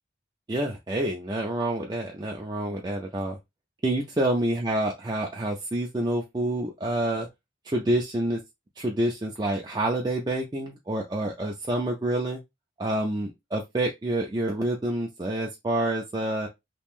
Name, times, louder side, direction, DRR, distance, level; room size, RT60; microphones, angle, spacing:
voice 1, 0.5-3.4 3.8-7.3 7.6-8.4 8.8-12.4 12.8-16.5, right 1 dB, 20° right, 0.4 m, -28 dB
3.6 x 3.0 x 2.4 m
head